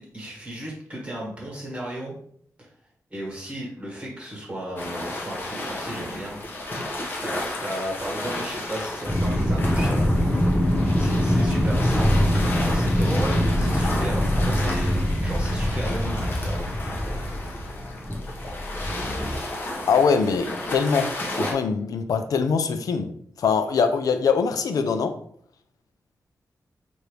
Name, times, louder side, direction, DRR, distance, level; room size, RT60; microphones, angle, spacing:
voice 1, 0.1-2.2 2.6-2.7 3.1-6.4 6.7-10.4 11.0-16.7, right 1 dB, 20° right, -4 dB, 1.5 m, -35 dB
sound 1, 4.8-21.5, left 1 dB, 35° left, 0.8 m, -33 dB
sound 2, 9.1-19.4, equal, ahead, 0.6 m, -23 dB
voice 2, 19.9-23.1 23.4-25.1, left 5 dB, 75° left, 8 dB, 0.4 m, -23 dB
4.6 x 2.6 x 3.3 m, 0.64 s
wide cardioid pair, 180°, 6 cm